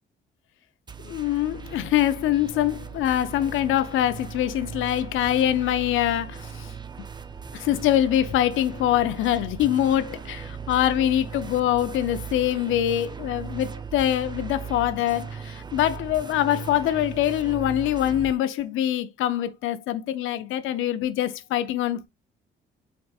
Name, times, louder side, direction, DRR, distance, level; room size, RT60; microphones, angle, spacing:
sound 1, 0.9-18.3, right 6 dB, 20° right, 0.5 m, -38 dB
voice 1, 1.0-6.7 7.5-22.1, left 12 dB, 80° left, 0.6 m, -24 dB
5.3 x 3.6 x 2.3 m
cardioid pair, 90°, 20 cm